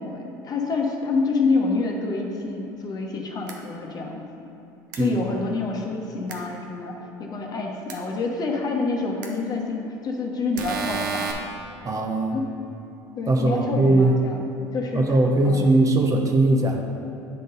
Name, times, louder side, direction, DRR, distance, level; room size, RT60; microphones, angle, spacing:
voice 1, 0.0-4.2 5.0-11.4 12.3-12.5 13.2-14.5 14.7-15.2 15.4-15.6, left 3 dB, 40° left, 1 dB, 1.0 m, -27 dB
sound 1, 3.5-3.6 4.9-5.0 6.3-6.4 7.9-8.0 9.2-9.3 10.6-11.3, right 5 dB, 85° right, 0.7 m, -30 dB
voice 2, 11.8-12.3 13.3-14.1 14.9-16.8, right 2 dB, 35° right, 2 dB, 0.8 m, -20 dB
9.5 x 3.8 x 4.0 m, 2.9 s
hypercardioid pair, 75°, 10 cm